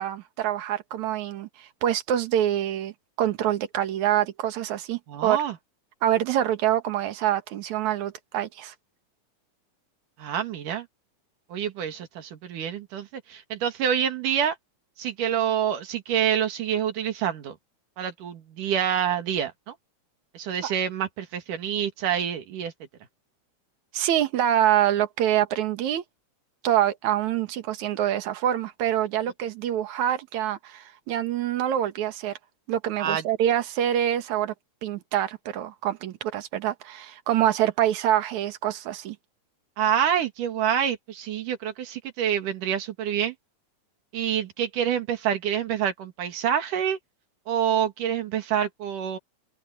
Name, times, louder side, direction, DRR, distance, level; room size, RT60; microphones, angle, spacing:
voice 1, 0.0-2.9 3.2-5.4 6.0-8.7 20.6-20.7 23.9-26.0 26.6-32.3 32.7-34.5 34.8-39.2, right 11 dB, 70° right, 2.8 m, -25 dB
voice 2, 5.1-5.6 10.2-10.9 11.5-14.6 15.0-17.6 18.0-19.8 20.4-22.7 33.0-33.2 39.8-43.4 44.1-47.0 47.5-49.2, right 9 dB, 85° right, 3.5 m, -27 dB
open air
omnidirectional pair, 3.6 m